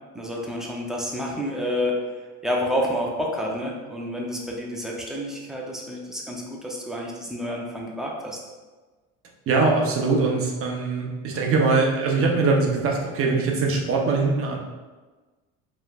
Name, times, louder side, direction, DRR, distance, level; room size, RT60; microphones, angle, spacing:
voice 1, 0.1-8.4, equal, ahead, -3 dB, 0.6 m, -29 dB
voice 2, 9.5-14.6, right 3 dB, 40° right, 0 dB, 0.8 m, -22 dB
5.2 x 3.1 x 2.4 m, 1.3 s
cardioid pair, 130°, 36 cm